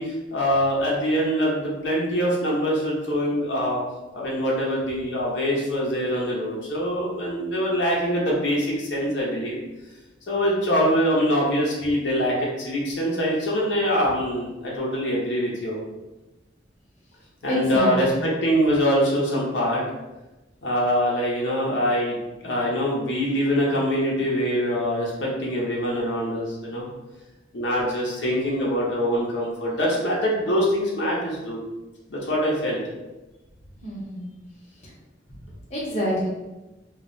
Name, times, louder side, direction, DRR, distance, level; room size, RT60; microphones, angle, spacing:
voice 1, 0.0-3.8 4.1-9.6 10.3-15.8 17.4-19.8 20.6-22.2 22.4-26.8 27.5-31.6 32.1-32.8, equal, 85° left, -4 dB, 0.7 m, -24 dB
voice 2, 17.5-18.2 33.8-34.3 35.7-36.3, equal, 40° left, -5 dB, 0.9 m, -27 dB
2.3 x 2.1 x 3.7 m, 1.1 s
head